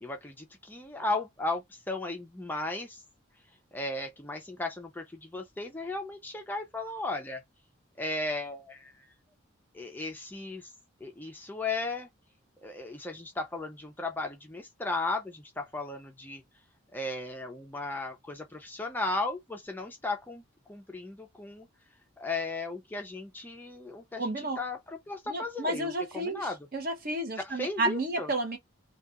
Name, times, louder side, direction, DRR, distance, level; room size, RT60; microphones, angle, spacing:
voice 1, 0.0-3.0 3.7-7.4 8.0-9.1 9.7-10.7 11.0-12.1 12.6-16.4 16.9-20.4 20.7-21.7 22.2-26.6 27.4-28.3, left 2 dB, 10° left, 0.4 m, -35 dB
voice 2, 24.2-24.6 25.3-28.6, right 2 dB, 45° right, 0.7 m, -32 dB
2.3 x 2.2 x 2.8 m
head